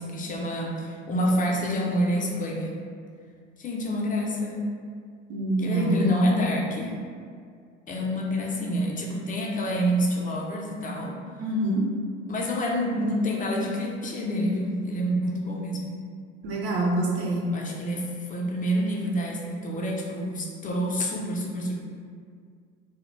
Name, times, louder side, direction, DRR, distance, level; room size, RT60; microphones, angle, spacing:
voice 1, 0.0-2.8 3.6-4.6 5.6-6.9 7.9-11.1 12.3-15.9 17.5-21.7, equal, 25° left, -1 dB, 0.4 m, -27 dB
voice 2, 5.3-6.0 11.4-11.8 16.4-17.5, right 1 dB, 65° right, -2 dB, 0.7 m, -26 dB
2.2 x 2.0 x 3.1 m, 2.1 s
hypercardioid pair, 75°, 36 cm